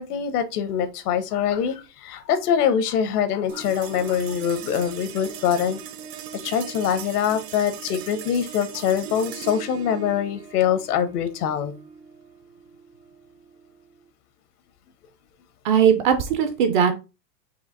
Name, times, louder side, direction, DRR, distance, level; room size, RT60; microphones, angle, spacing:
voice 1, 0.0-5.8 6.4-11.7, left 8 dB, 65° left, 10 dB, 1.1 m, -24 dB
sound 1, 3.5-14.1, right 9 dB, 70° right, 1.0 m, -40 dB
voice 2, 15.6-16.9, right 8 dB, 30° right, 8 dB, 0.5 m, -19 dB
5.0 x 2.9 x 3.7 m, 0.28 s
supercardioid pair, 145°, 50 cm